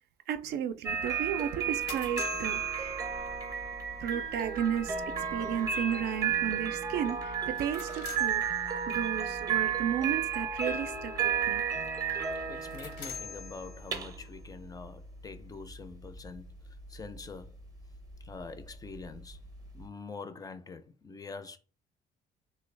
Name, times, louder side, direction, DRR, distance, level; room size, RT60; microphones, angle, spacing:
voice 1, 0.3-3.0 4.0-8.4 8.9-11.6, right 9 dB, 75° right, 0.4 m, -34 dB
sound 1, 0.8-19.9, right 7 dB, 20° right, 0.6 m, -33 dB
sound 2, 1.4-3.6 7.4-9.1 12.4-14.2, left 7 dB, 75° left, 0.7 m, -46 dB
voice 2, 12.5-16.5 16.9-17.6 18.2-19.4 19.7-21.6, left 4 dB, 20° left, 0.4 m, -45 dB
3.2 x 2.2 x 3.2 m
cardioid pair, 110°, 17 cm